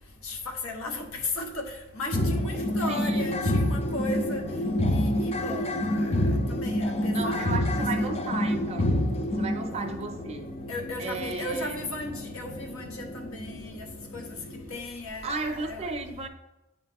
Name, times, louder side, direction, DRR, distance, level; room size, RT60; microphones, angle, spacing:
voice 1, 0.2-4.5 4.9-8.2 10.7-13.9 14.1-14.3 14.7-15.9, left 2 dB, 75° left, 3 dB, 0.9 m, -36 dB
sound 1, 2.1-14.8, left 1 dB, 30° left, 0.4 m, -28 dB
voice 2, 2.9-3.4 7.1-9.1 9.3-10.5 11.0-11.8 15.2-16.3, right 3 dB, 30° right, 3 dB, 0.5 m, -34 dB
9.1 x 3.2 x 3.5 m, 0.96 s
head